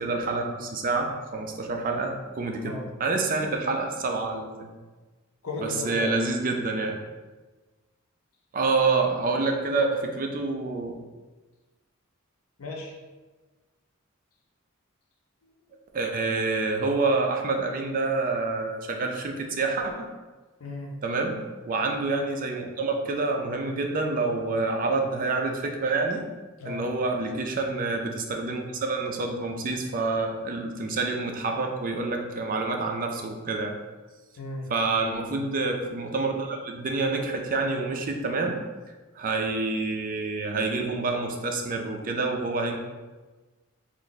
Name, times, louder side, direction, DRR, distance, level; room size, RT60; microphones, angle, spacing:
voice 1, 0.0-4.7 5.6-7.0 8.5-10.9 15.9-20.1 21.0-26.2 26.6-33.7 34.7-38.6 39.2-42.8, right 3 dB, 40° right, 3 dB, 0.4 m, -27 dB
voice 2, 5.4-6.1 12.6-13.0 15.4-15.8 20.6-20.9 26.6-26.9 34.4-34.7, left 2 dB, 90° left, 0 dB, 0.7 m, -35 dB
3.3 x 2.5 x 3.9 m, 1.3 s
head